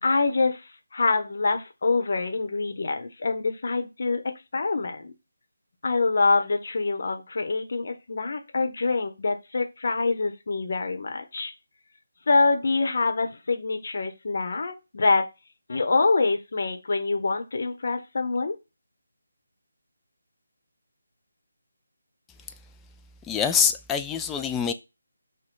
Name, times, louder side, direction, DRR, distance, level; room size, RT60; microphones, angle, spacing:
voice 1, 0.0-4.2 4.5-5.1 5.8-11.5 12.3-15.2 15.7-18.6, left 3 dB, 55° left, 0.9 m, -25 dB
voice 2, 23.2-24.7, left 7 dB, 10° left, 0.3 m, -25 dB
6.0 x 2.2 x 3.8 m
figure-of-eight pair, 155°, 0 cm